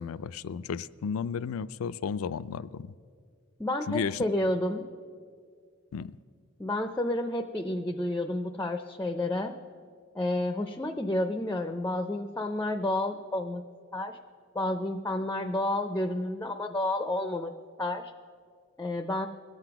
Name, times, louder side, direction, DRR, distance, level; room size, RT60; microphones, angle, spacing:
voice 1, 0.0-2.9 3.9-4.2 5.9-6.2, left 6 dB, 80° left, 17 dB, 0.4 m, -33 dB
voice 2, 3.6-4.9 6.6-9.5 10.1-13.6 13.9-14.2 14.5-17.5 17.8-18.1 18.8-19.3, left 1 dB, 10° left, 8 dB, 0.4 m, -30 dB
21.0 x 7.9 x 5.8 m, 2.1 s
head